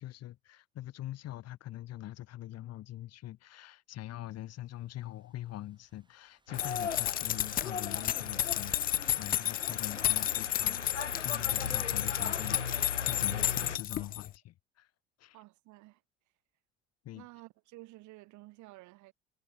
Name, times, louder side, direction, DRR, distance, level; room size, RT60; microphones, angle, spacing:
voice 1, 0.0-14.9 15.2-15.4 17.0-17.3, left 14 dB, 45° left, 2.1 m, -44 dB
Thunderstorm / Rain, 4.2-13.3, right 2 dB, 15° right, 7.2 m, -70 dB
sound 1, 6.5-13.8, left 6 dB, 85° left, 1.2 m, -38 dB
sound 2, 6.5-14.3, left 12 dB, 25° left, 0.4 m, -32 dB
voice 2, 15.3-16.0 17.2-19.1, right 20 dB, 55° right, 5.5 m, -52 dB
figure-of-eight pair, 65°, 35 cm